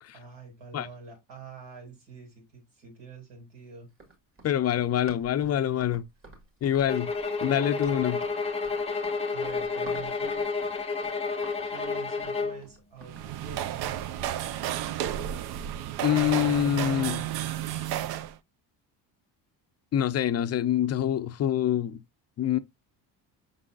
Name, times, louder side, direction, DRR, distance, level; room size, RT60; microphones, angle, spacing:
voice 1, 0.1-3.9 9.3-10.5 11.7-13.8, right 5 dB, 75° right, 2.7 m, -46 dB
Run, 3.9-14.4, right 2 dB, 30° right, 1.9 m, -51 dB
voice 2, 4.4-6.1 6.6-7.1 7.4-8.2 16.0-17.2 19.9-22.0 22.4-22.6, left 10 dB, 35° left, 0.5 m, -25 dB
sound 1, 6.9-12.6, left 4 dB, 15° left, 0.8 m, -30 dB
sound 2, 13.0-18.3, right 11 dB, 60° right, 0.5 m, -32 dB
5.4 x 3.8 x 2.3 m
supercardioid pair, 85°, 44 cm